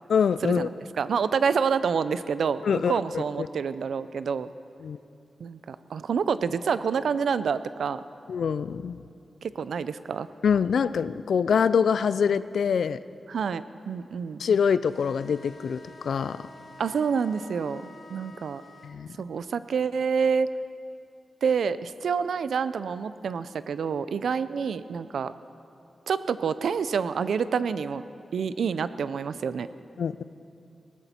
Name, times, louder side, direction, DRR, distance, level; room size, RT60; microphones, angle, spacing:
voice 1, 0.1-0.7 2.6-3.5 4.8-5.0 8.3-9.0 10.4-13.0 14.4-16.5 18.8-19.1 30.0-30.2, left 6 dB, 85° left, 16 dB, 0.4 m, -25 dB
voice 2, 1.0-4.5 5.4-8.0 9.4-10.3 13.3-14.4 16.8-18.6 19.2-20.5 21.4-25.3 26.1-28.0 28.3-29.7, right 6 dB, 85° right, 14 dB, 0.5 m, -27 dB
sound 1, 14.8-19.0, left 2 dB, 50° left, 1.3 m, -49 dB
18.5 x 15.0 x 4.4 m, 2.6 s
wide cardioid pair, 105°, 0 cm